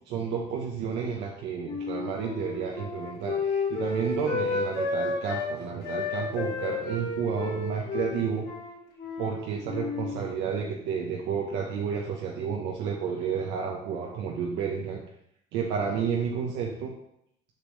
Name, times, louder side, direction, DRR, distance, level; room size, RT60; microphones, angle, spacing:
voice 1, 0.1-8.5 9.2-15.0 15.5-16.9, right 6 dB, 65° right, -1 dB, 1.0 m, -31 dB
Wind instrument woodwind instrument, 1.6-5.5 5.8-9.4 9.7-10.2, left 4 dB, 55° left, 2.5 m, -32 dB
6.8 x 6.0 x 3.2 m, 0.76 s
cardioid pair, 140°, 20 cm